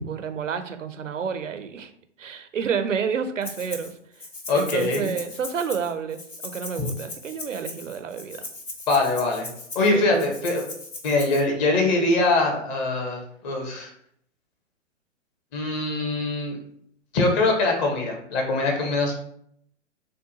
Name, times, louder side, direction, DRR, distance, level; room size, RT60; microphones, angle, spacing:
voice 1, 0.0-1.9 2.2-3.9 4.5-8.5 9.9-10.3, right 6 dB, 85° right, 9 dB, 0.6 m, -30 dB
Rattle (instrument), 3.4-3.9 4.2-11.4, left 2 dB, 90° left, 1.1 m, -39 dB
voice 2, 4.5-5.1 8.9-9.5 9.7-10.6 11.0-13.9 15.5-16.6 17.1-19.1, left 2 dB, 35° left, 2 dB, 1.1 m, -23 dB
6.4 x 2.2 x 2.8 m, 0.68 s
figure-of-eight pair, 115°, 37 cm